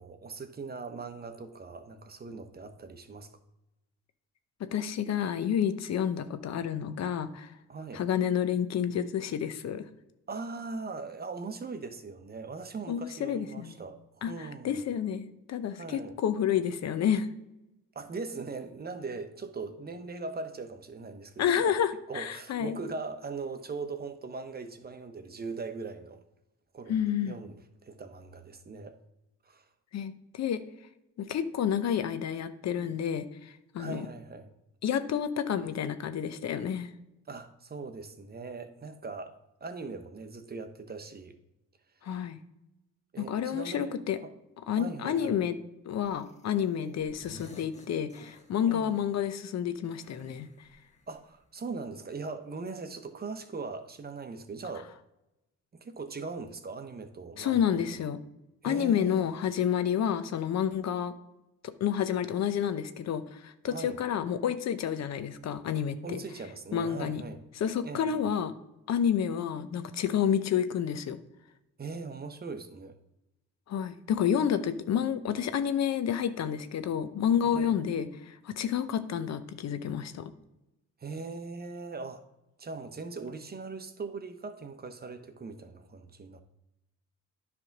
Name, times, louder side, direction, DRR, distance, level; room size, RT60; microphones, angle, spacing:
voice 1, 0.0-3.3 7.7-8.0 10.3-14.8 15.7-16.2 17.9-21.8 22.1-26.2 26.7-28.9 29.4-29.6 32.8-33.0 33.8-34.5 37.3-39.4 39.6-41.3 43.1-44.3 44.8-45.4 46.8-47.1 48.7-49.0 51.1-54.9 55.7-57.7 58.6-59.4 63.6-64.0 66.0-67.4 67.8-68.2 71.8-72.9 77.4-77.8 81.0-82.2 82.6-86.4, right 4 dB, 30° right, 9 dB, 0.9 m, -40 dB
voice 2, 4.7-7.5 7.9-9.8 12.9-13.7 14.2-17.3 21.4-22.8 26.9-27.3 29.9-30.6 31.2-34.1 34.8-36.9 42.0-42.4 43.2-44.2 44.7-45.6 45.8-50.7 57.4-58.2 58.6-61.1 61.8-66.2 66.7-67.2 67.6-68.5 68.9-71.2 73.7-80.3, left 8 dB, 60° left, 11 dB, 0.8 m, -29 dB
sound 1, 46.0-46.7 47.0-49.0 50.0-51.5, left 1 dB, 25° left, 1.6 m, -54 dB
9.9 x 3.5 x 5.9 m, 0.94 s
cardioid pair, 90°, 30 cm